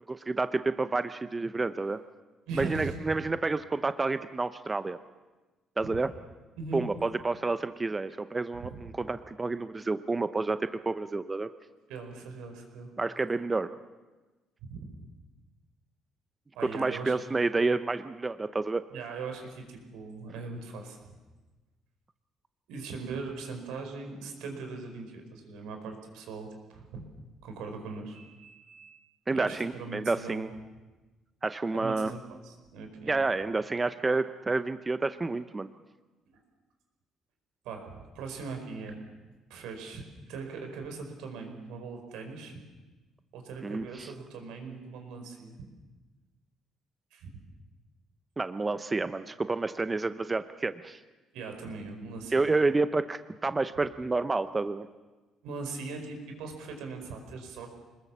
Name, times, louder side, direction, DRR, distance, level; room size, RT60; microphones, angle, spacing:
voice 1, 0.1-2.0 2.5-5.0 5.8-6.1 6.7-11.5 13.0-13.7 16.7-18.8 29.3-30.5 31.4-32.1 33.1-35.7 43.6-44.1 48.4-51.0 52.3-54.9, right 3 dB, 20° right, 11 dB, 0.7 m, -29 dB
voice 2, 2.5-3.0 6.6-6.8 11.9-12.9 14.7-14.9 16.5-17.1 18.9-21.1 22.7-27.1 27.4-29.0 29.3-30.5 31.8-33.1 36.3-36.4 37.6-39.0 39.5-42.6 43.3-45.5 47.1-47.4 51.3-52.5 55.4-57.7, right 4 dB, 90° right, 4 dB, 5.1 m, -40 dB
26.0 x 20.5 x 7.3 m, 1.2 s
cardioid pair, 125°, 0 cm